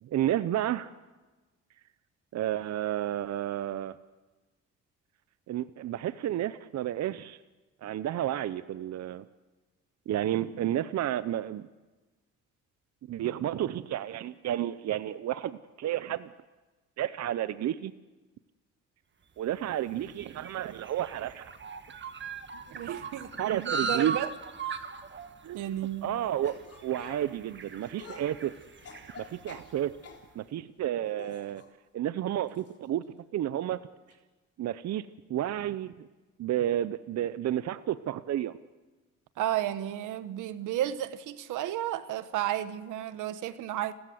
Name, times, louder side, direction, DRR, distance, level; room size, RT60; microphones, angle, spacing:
voice 1, 0.0-0.9 2.3-3.9 5.5-7.4 7.8-9.2 10.1-11.7 13.1-16.3 17.0-17.9 19.4-21.5 22.8-23.0 23.4-24.2 25.4-25.6 26.0-26.5 26.8-28.5 29.2-29.9 30.3-31.6 31.9-33.8 34.6-36.1 36.4-38.6, right 12 dB, 60° right, 14 dB, 0.7 m, -31 dB
sound 1, 19.5-30.1, right 5 dB, 40° right, 1.5 m, -39 dB
voice 2, 22.5-24.3 25.5-26.1 39.4-43.9, right 12 dB, 85° right, 13 dB, 1.1 m, -33 dB
sound 2, 26.4-30.3 31.0-31.7 32.5-32.7 33.0-33.1 34.1-34.2, left 4 dB, 50° left, 3.6 m, -49 dB
29.5 x 14.0 x 7.8 m, 1.2 s
cardioid pair, 90°, 30 cm